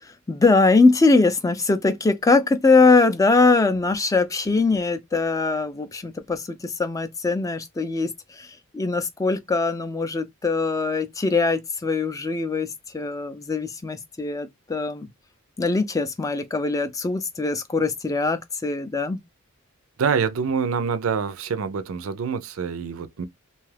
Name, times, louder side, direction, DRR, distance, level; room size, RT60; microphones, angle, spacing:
voice 1, 0.3-8.5 8.7-15.1 15.6-19.2, left 3 dB, 15° left, 0.3 m, -21 dB
voice 2, 20.0-23.3, right 6 dB, 75° right, 0.4 m, -26 dB
2.7 x 2.3 x 3.2 m
head